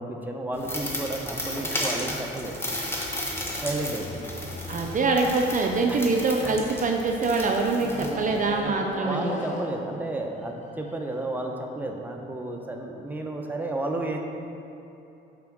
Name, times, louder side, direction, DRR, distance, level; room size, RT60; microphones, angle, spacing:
voice 1, 0.0-2.6 3.6-4.2 5.9-6.1 6.4-6.6 8.6-14.2, right 2 dB, 10° right, 1 dB, 0.7 m, -32 dB
sound 1, 0.5-8.6, left 1 dB, 10° left, 1.3 m, -34 dB
sound 2, 2.4-6.9 7.7-11.3, left 1 dB, 35° left, 0.9 m, -40 dB
voice 2, 4.7-9.3, right 3 dB, 40° right, 2 dB, 0.6 m, -24 dB
5.9 x 4.3 x 6.1 m, 2.8 s
cardioid pair, 90°, 20 cm